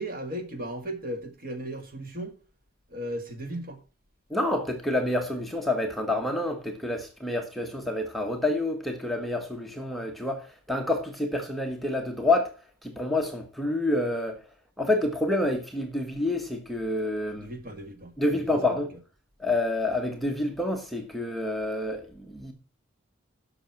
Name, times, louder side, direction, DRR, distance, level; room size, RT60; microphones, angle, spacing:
voice 1, 0.0-2.3 2.9-3.8 17.4-18.8, right 1 dB, 45° right, 2.0 m, -36 dB
voice 2, 4.3-12.5 12.8-14.4 14.8-17.5 18.2-18.9 19.4-22.5, left 2 dB, ahead, 1.1 m, -28 dB
11.0 x 6.7 x 5.8 m
head